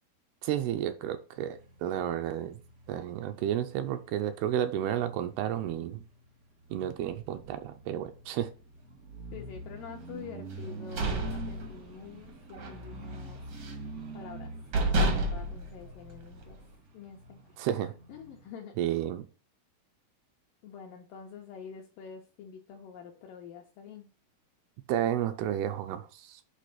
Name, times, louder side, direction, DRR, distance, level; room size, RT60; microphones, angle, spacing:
voice 1, 0.4-2.6 2.9-6.0 6.7-8.5 17.6-17.9 18.8-19.2 24.9-26.4, right 11 dB, 80° right, 8 dB, 2.4 m, -31 dB
sound 1, 1.4-18.5, right 2 dB, 50° right, 1.0 m, -46 dB
voice 2, 9.3-13.4 14.1-14.5 14.8-16.6 16.9-17.4 18.1-18.7 20.6-24.1, left 7 dB, 75° left, 2 dB, 2.0 m, -47 dB
sound 2, 10.6-12.2 12.5-12.8 13.1-13.9 14.4-14.5 14.7-16.6, right 1 dB, 65° right, 1.4 m, -30 dB
8.4 x 3.4 x 5.8 m, 0.35 s
omnidirectional pair, 4.8 m